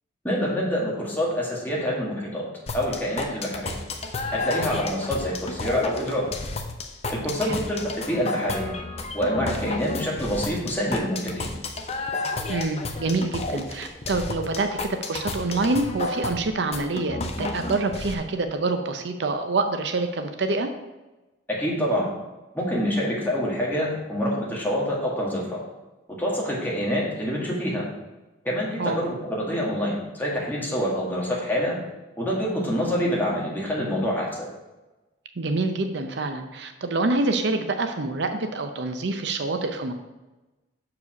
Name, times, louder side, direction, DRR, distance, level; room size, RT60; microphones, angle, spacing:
voice 1, 0.2-2.4 2.7-3.8 4.3-6.2 7.1-8.8 9.1-11.5 21.5-22.1 22.5-25.6 26.2-27.8 28.4-31.8 32.2-34.5, equal, 10° left, -5 dB, 1.9 m, -26 dB
sound 1, 2.7-18.1, left 2 dB, 30° left, 0.7 m, -32 dB
voice 2, 12.5-20.7 28.8-29.0 35.4-39.9, right 3 dB, 60° right, 6 dB, 0.6 m, -26 dB
6.8 x 4.8 x 5.9 m, 1.1 s
head